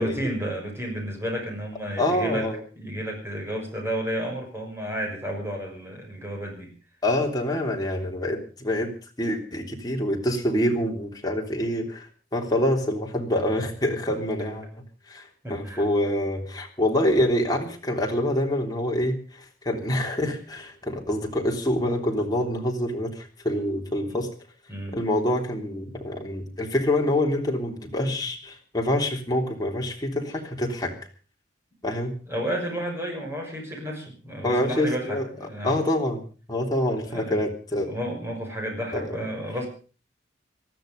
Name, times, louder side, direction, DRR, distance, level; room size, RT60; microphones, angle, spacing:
voice 1, 0.0-2.4 2.8-6.7 15.4-15.8 24.1-24.2 24.7-25.0 32.3-35.8 37.0-37.4 37.7-39.7, equal, 15° right, 1 dB, 6.2 m, -31 dB
voice 2, 2.0-2.6 7.0-14.7 15.1-24.3 24.9-31.0 31.8-32.2 34.4-35.2 35.6-36.2 36.5-37.9 38.9-39.1, left 1 dB, 20° left, 1 dB, 3.4 m, -26 dB
19.5 x 14.0 x 5.3 m, 0.38 s
head